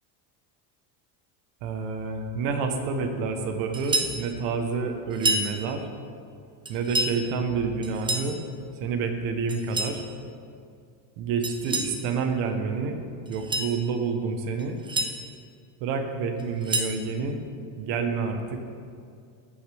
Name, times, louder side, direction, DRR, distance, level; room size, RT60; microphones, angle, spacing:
voice 1, 1.6-5.9 6.7-8.4 8.8-10.1 11.2-13.0 13.3-14.8 15.8-17.4 17.8-18.6, right 4 dB, 65° right, 5 dB, 1.4 m, -28 dB
sound 1, 3.7-4.2 5.1-5.5 6.7-7.2 7.8-8.3 9.5-10.0 11.4-12.0 13.3-13.7 14.6-15.1 16.4-17.0, right 2 dB, 10° right, 0.5 m, -28 dB
14.0 x 8.3 x 3.6 m, 2.3 s
cardioid pair, 150°, 49 cm